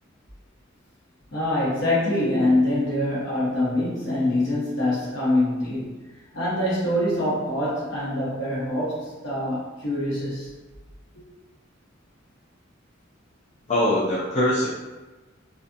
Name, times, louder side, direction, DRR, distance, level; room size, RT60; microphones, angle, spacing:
voice 1, 1.3-5.9 6.3-10.5 11.1-11.2, left 1 dB, 65° left, -7 dB, 1.0 m, -24 dB
voice 2, 13.7-14.7, left 1 dB, 35° left, -8 dB, 0.5 m, -22 dB
2.4 x 2.4 x 2.5 m, 1.1 s
head